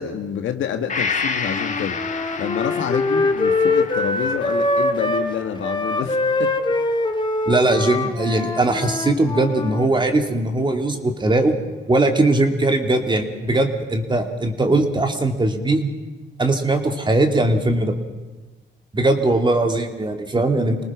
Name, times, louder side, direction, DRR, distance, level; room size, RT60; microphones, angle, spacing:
voice 1, 0.0-2.0 2.4-6.5, left 8 dB, 75° left, 7 dB, 1.8 m, -27 dB
Gong, 0.9-8.5 8.9-9.0, left 5 dB, 40° left, 1.7 m, -32 dB
Wind instrument woodwind instrument, 1.4-5.3 5.6-9.9, left 2 dB, 25° left, 1.8 m, -23 dB
voice 2, 7.5-11.5 11.9-15.9 16.4-17.9 18.9-20.8, right 2 dB, 25° right, 5 dB, 2.7 m, -20 dB
26.5 x 19.0 x 6.3 m, 1.2 s
cardioid pair, 90°, 20 cm